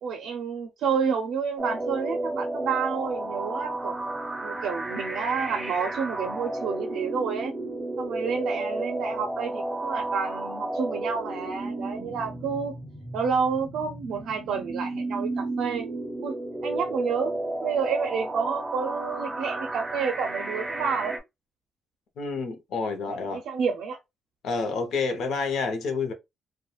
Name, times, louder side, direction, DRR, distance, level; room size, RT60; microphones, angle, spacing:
voice 1, 0.0-3.9 4.4-7.5 8.0-12.7 13.1-15.9 16.2-16.3 16.6-17.3 17.6-21.1 23.1-24.0, right 6 dB, 70° right, 0.4 m, -29 dB
sound 1, 1.6-21.2, right 2 dB, 10° right, 0.4 m, -33 dB
voice 2, 22.2-23.4 24.4-26.1, left 4 dB, 65° left, 0.6 m, -29 dB
2.3 x 2.1 x 2.9 m
cardioid pair, 175°, 0 cm